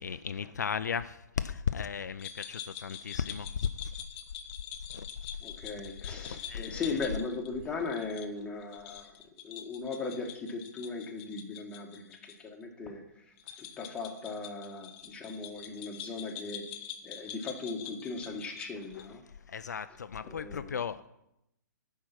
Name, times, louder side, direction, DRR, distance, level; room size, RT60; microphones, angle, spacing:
voice 1, 0.0-3.9 4.9-5.1 6.2-7.0 18.9-19.0 19.5-21.1, left 7 dB, 65° left, 11 dB, 0.4 m, -35 dB
sound 1, 2.2-12.4 12.6-12.7 13.4-19.1, left 9 dB, 30° left, 0.7 m, -45 dB
voice 2, 5.4-9.1 9.4-13.0 13.6-16.6 17.0-19.2 20.2-20.8, left 4 dB, 10° left, 1 dB, 1.3 m, -38 dB
10.5 x 4.7 x 5.9 m, 0.83 s
figure-of-eight pair, 120°, 10 cm